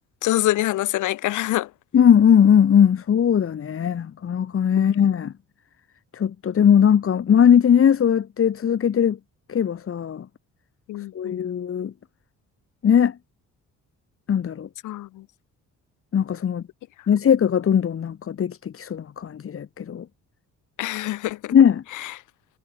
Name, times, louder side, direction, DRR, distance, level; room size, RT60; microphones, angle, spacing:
voice 1, 0.2-1.7 4.7-5.0 10.9-11.5 14.8-15.3 20.8-21.5 21.9-22.2, left 16 dB, 80° left, 1.1 m, -26 dB
voice 2, 1.9-5.3 6.1-9.2 9.5-10.2 11.1-11.9 12.8-13.1 14.3-14.7 16.1-16.6 17.1-20.0 21.5-21.8, left 8 dB, 45° left, 1.6 m, -19 dB
cardioid pair, 90°, 30 cm